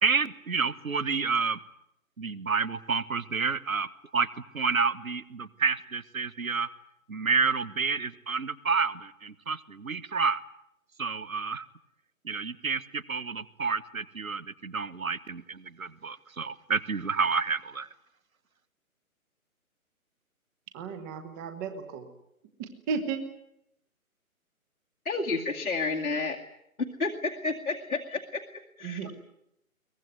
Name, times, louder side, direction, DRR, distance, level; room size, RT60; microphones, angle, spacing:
voice 1, 0.0-1.6 2.2-4.3 4.5-6.7 7.1-10.4 11.0-11.6 12.2-17.9, right 5 dB, 70° right, 17 dB, 1.4 m, -29 dB
voice 2, 20.7-22.1 22.6-23.2 28.8-29.1, right 5 dB, 15° right, 8 dB, 1.4 m, -34 dB
voice 3, 25.0-26.4 26.8-28.4 28.8-29.0, left 3 dB, 75° left, 0 dB, 2.3 m, -30 dB
23.0 x 20.0 x 9.4 m, 0.79 s
figure-of-eight pair, 140°, 43 cm